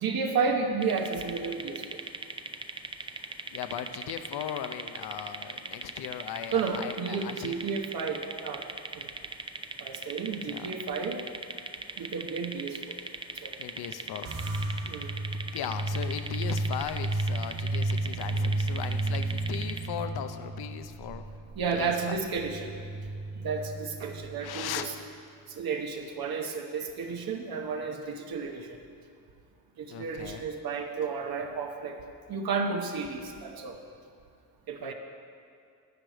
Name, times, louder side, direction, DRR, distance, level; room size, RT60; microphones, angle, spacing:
voice 1, 0.0-2.0 6.5-8.7 8.9-9.1 9.8-11.2 12.0-13.0 13.3-13.6 14.9-15.1 21.5-22.7 23.3-24.9 25.5-28.8 29.8-32.0 32.3-33.8 34.7-34.9, right 5 dB, 75° right, 2 dB, 1.1 m, -32 dB
sound 1, 0.8-19.9, right 3 dB, 15° right, 0.4 m, -40 dB
voice 2, 3.5-7.6 10.4-10.7 13.6-14.3 14.8-14.9 15.5-21.2 21.7-22.2 24.4-24.9 29.9-30.5 34.8-34.9, left 9 dB, 85° left, 9 dB, 0.7 m, -38 dB
sound 2, 14.3-24.9, right 2 dB, 90° right, 2.9 m, -33 dB
13.5 x 4.9 x 9.0 m, 2.3 s
cardioid pair, 120°, 37 cm